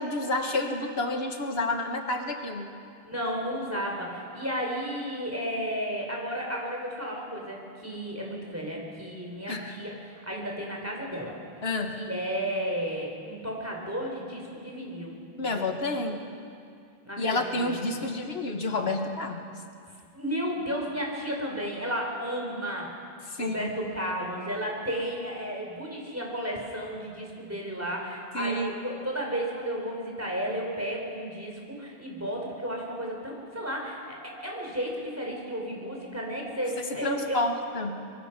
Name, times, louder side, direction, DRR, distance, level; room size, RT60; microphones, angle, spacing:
voice 1, 0.0-2.7 9.5-9.7 11.6-11.9 15.4-16.2 17.2-19.4 23.3-23.7 28.3-28.7 37.0-38.0, left 2 dB, 80° left, 4 dB, 1.7 m, -29 dB
voice 2, 3.0-11.4 12.0-15.2 17.0-18.1 20.1-22.9 23.4-37.4, equal, 15° right, -1 dB, 4.2 m, -33 dB
24.5 x 22.5 x 6.0 m, 2.4 s
omnidirectional pair, 1.0 m